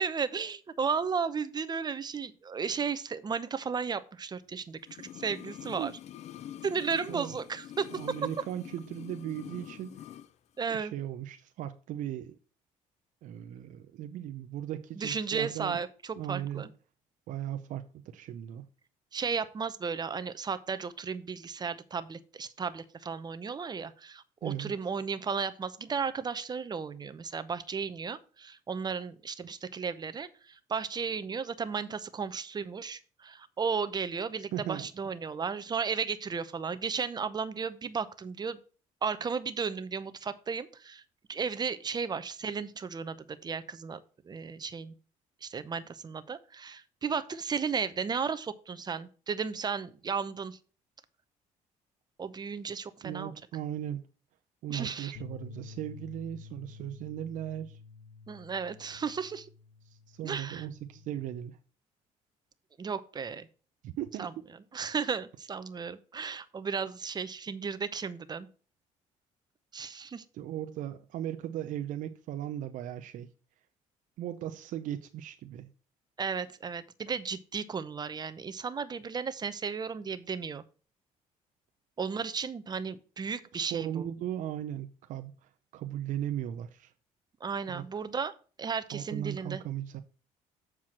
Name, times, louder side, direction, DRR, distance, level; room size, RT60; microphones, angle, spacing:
voice 1, 0.0-5.9 6.6-8.2 10.6-10.9 14.9-16.7 19.1-38.6 39.0-41.0 41.3-44.0 44.2-44.9 45.4-50.6 52.2-53.3 54.7-55.1 58.3-59.5 60.2-60.7 62.8-63.5 64.2-64.3 64.7-68.5 69.7-70.2 76.2-80.6 82.0-84.1 87.4-88.3 88.6-89.6, right 5 dB, 30° right, 0.8 m, -34 dB
sound 1, 4.8-10.3 10.6-10.7, left 11 dB, 55° left, 0.5 m, -46 dB
voice 2, 7.9-10.0 10.7-12.4 13.2-15.8 16.1-16.7 17.3-18.7 24.4-24.7 34.5-34.9 53.0-54.1 54.6-57.8 59.9-61.6 63.8-64.5 70.3-73.3 74.2-75.7 83.5-86.9 87.7-87.9 88.9-90.0, right 11 dB, 70° right, 0.6 m, -37 dB
Bass guitar, 55.1-61.4, left 5 dB, 90° left, 0.7 m, -50 dB
7.5 x 4.7 x 5.9 m
cardioid pair, 95°, 14 cm